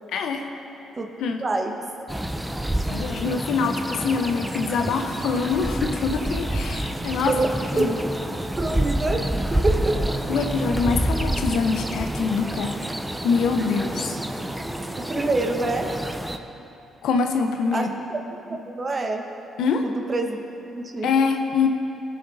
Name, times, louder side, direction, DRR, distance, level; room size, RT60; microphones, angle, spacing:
voice 1, 0.1-0.5 1.2-1.4 2.9-7.3 7.7-8.0 10.3-12.8 13.2-14.1 17.0-17.9 19.6-19.9 21.0-21.7, left 5 dB, 80° left, 5 dB, 0.9 m, -24 dB
voice 2, 1.4-1.7 7.3-7.5 7.8-7.9 8.6-10.0 15.1-15.9 17.7-19.2 19.8-20.4 20.7-21.1, right 2 dB, 30° right, 4 dB, 1.1 m, -26 dB
sound 1, 2.1-16.4, right 1 dB, 5° right, 0.6 m, -28 dB
17.5 x 6.5 x 4.1 m, 2.9 s
cardioid pair, 90°, 0 cm